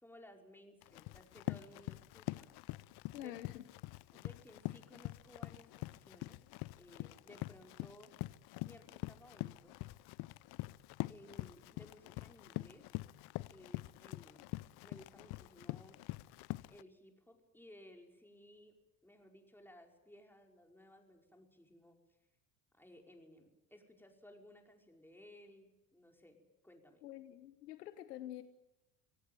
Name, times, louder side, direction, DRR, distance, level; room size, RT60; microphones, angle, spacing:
voice 1, 0.0-2.7 3.1-3.4 4.1-6.4 6.8-8.1 8.6-9.8 11.1-13.0 13.5-14.5 14.8-16.0 16.6-18.7 19.0-22.0 22.7-26.4 26.6-27.0, left 1 dB, 5° left, 2 dB, 5.3 m, -59 dB
Run, 0.8-16.8, left 20 dB, 55° left, 0.7 m, -45 dB
voice 2, 3.1-3.6 27.0-28.4, left 13 dB, 85° left, 11 dB, 1.3 m, -47 dB
25.0 x 17.5 x 9.2 m, 0.96 s
hypercardioid pair, 75°, 47 cm